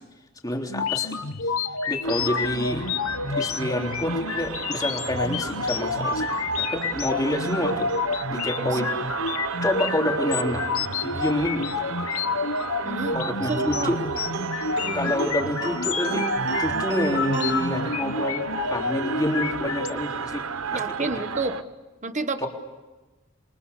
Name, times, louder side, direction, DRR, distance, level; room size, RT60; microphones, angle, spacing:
voice 1, 0.4-1.2 1.9-2.9 3.4-6.3 6.6-7.9 8.3-8.9 9.6-12.1 13.1-14.2 14.9-20.5 20.7-20.8 21.1-21.2 22.4-22.5, left 1 dB, 15° left, 1 dB, 3.5 m, -28 dB
sound 1, 0.7-19.9, left 5 dB, 75° left, 1.2 m, -29 dB
sound 2, 2.0-21.6, right 5 dB, 70° right, 1.1 m, -33 dB
voice 2, 12.8-13.9 15.0-15.1 15.4-15.5 20.7-21.6 22.0-22.5, right 3 dB, 35° right, 9 dB, 1.3 m, -30 dB
sound 3, 13.5-18.5, right 2 dB, 50° right, 2.5 m, -34 dB
28.0 x 24.0 x 8.4 m, 1.2 s
head